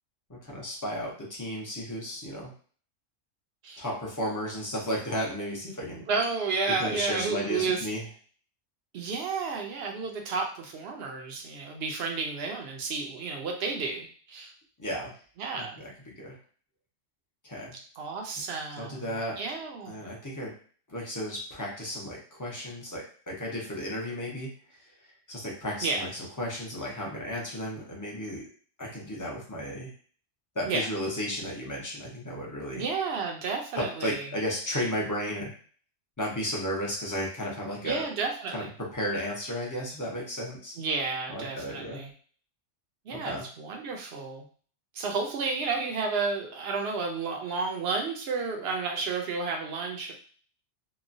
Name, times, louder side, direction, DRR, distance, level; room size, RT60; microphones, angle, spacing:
voice 1, 0.3-2.5 3.8-6.1 6.8-8.0 14.8-15.1 15.5-15.9 16.2-16.4 17.4-17.8 18.8-19.4 19.9-20.5 20.9-24.8 25.3-28.4 28.8-29.9 30.5-32.8 33.7-35.5 36.2-38.0 38.5-40.8 41.3-42.0 43.1-43.4, equal, 20° left, -3 dB, 0.6 m, -34 dB
voice 2, 6.1-7.9 8.9-14.5 15.4-15.8 18.0-20.0 25.8-26.0 30.7-30.9 32.7-34.3 37.8-38.7 40.8-42.1 43.1-44.5 45.0-50.1, right 4 dB, 60° right, 2 dB, 0.8 m, -31 dB
2.9 x 2.2 x 2.5 m, 0.44 s
omnidirectional pair, 1.3 m